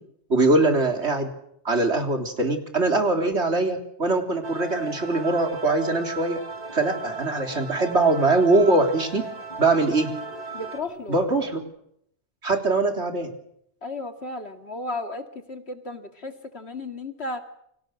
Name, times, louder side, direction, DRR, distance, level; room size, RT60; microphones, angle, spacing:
voice 1, 0.3-1.3 1.7-6.4 6.7-9.2 9.6-10.1 11.1-11.6 12.4-13.3, right 2 dB, 75° right, 5 dB, 3.8 m, -22 dB
sound 1, 4.4-10.8, right 3 dB, 35° right, 2.8 m, -37 dB
sound 2, 6.5-11.6, right 1 dB, 30° left, 5.7 m, -48 dB
voice 2, 10.5-11.2 13.8-17.4, left 2 dB, 65° left, 7 dB, 2.6 m, -34 dB
29.0 x 25.0 x 6.5 m, 0.73 s
omnidirectional pair, 1.2 m